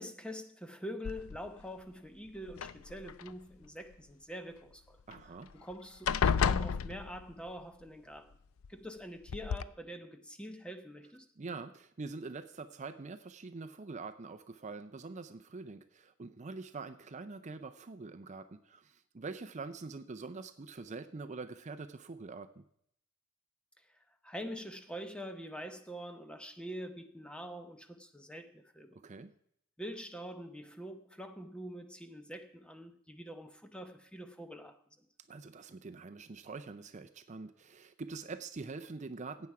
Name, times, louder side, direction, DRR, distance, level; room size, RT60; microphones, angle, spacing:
voice 1, 0.0-5.0 5.2-8.4 8.7-11.3 23.9-29.0 29.8-35.1, equal, 5° left, 8 dB, 0.8 m, -45 dB
sound 1, 1.1-1.6 2.5-3.3 5.1-5.2 5.5-5.7 6.1-7.5 8.6-8.7 9.3-9.6, left 6 dB, 70° left, 0.4 m, -31 dB
voice 2, 5.1-5.5 11.4-22.6 28.9-29.3 35.3-39.5, right 3 dB, 35° right, 10 dB, 0.5 m, -45 dB
15.0 x 8.8 x 4.8 m, 0.71 s
head